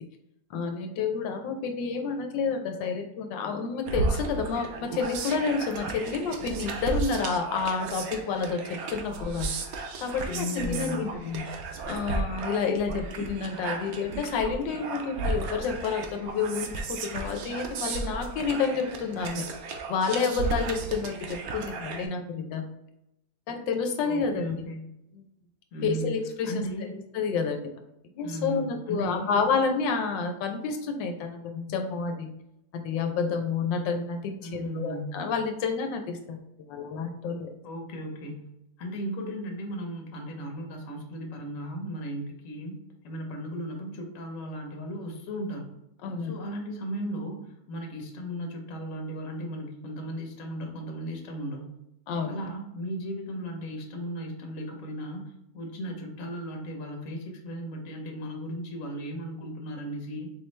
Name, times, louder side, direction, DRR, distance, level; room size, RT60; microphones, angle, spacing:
voice 1, 0.5-8.6 8.9-9.6 10.0-11.5 11.9-19.4 19.9-22.7 23.5-24.7 25.1-25.2 25.8-26.7 27.1-27.7 28.1-32.3 32.7-36.4 36.7-37.5 46.0-46.3 52.1-52.3, left 5 dB, 85° left, 5 dB, 1.3 m, -29 dB
sound 1, 3.9-22.1, right 3 dB, 70° right, 0.9 m, -34 dB
voice 2, 10.3-11.1 24.0-24.9 25.7-26.1 26.4-26.9 28.2-29.4 34.4-35.2 37.6-38.5 38.8-42.8 43.0-45.7 46.2-51.6 52.3-60.3, equal, 55° left, 2 dB, 1.1 m, -36 dB
4.3 x 3.1 x 3.2 m, 0.84 s
omnidirectional pair, 2.0 m